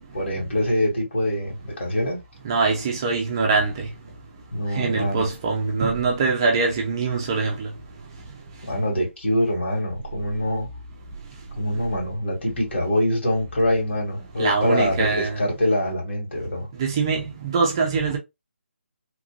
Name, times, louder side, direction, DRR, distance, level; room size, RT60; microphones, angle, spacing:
voice 1, 0.1-2.2 4.5-5.3 8.6-10.7 11.6-16.7, left 1 dB, 60° left, 2.0 m, -24 dB
voice 2, 2.4-3.9 4.8-7.7 14.4-15.4 16.8-18.2, right 4 dB, 20° right, 0.5 m, -23 dB
2.9 x 2.5 x 2.3 m
hypercardioid pair, 165°, 7 cm